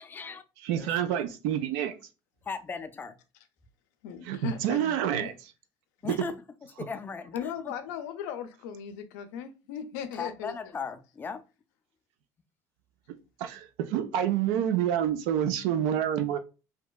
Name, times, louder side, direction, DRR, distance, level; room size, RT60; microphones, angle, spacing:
voice 1, 0.0-0.4 0.7-1.2 2.4-3.2 6.0-6.4 6.8-7.7 10.1-11.4, left 5 dB, 20° left, 0.3 m, -38 dB
voice 2, 0.6-1.9 4.2-5.3 6.0-6.3 13.4-16.4, right 10 dB, 85° right, 0.4 m, -28 dB
voice 3, 4.0-5.3 7.3-10.5, left 8 dB, 90° left, 0.4 m, -38 dB
2.7 x 2.2 x 2.2 m
supercardioid pair, 105°, 9 cm